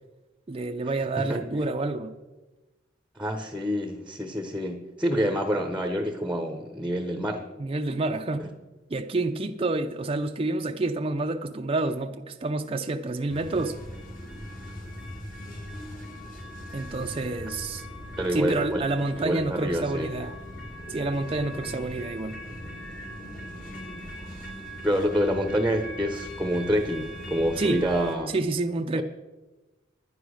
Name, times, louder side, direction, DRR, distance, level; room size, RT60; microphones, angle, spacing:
voice 1, 0.5-2.1 7.6-8.5 8.9-13.8 16.7-17.8 18.3-20.4 20.9-22.4 27.6-27.8 28.3-29.0, right 2 dB, 30° right, 0.5 m, -28 dB
voice 2, 3.2-7.5 8.4-8.5 18.2-18.8 19.2-20.1 24.8-28.3 29.0-29.1, equal, 5° right, 0.8 m, -27 dB
sound 1, 13.3-28.2, equal, 45° left, 2.2 m, -40 dB
11.0 x 10.0 x 6.3 m
head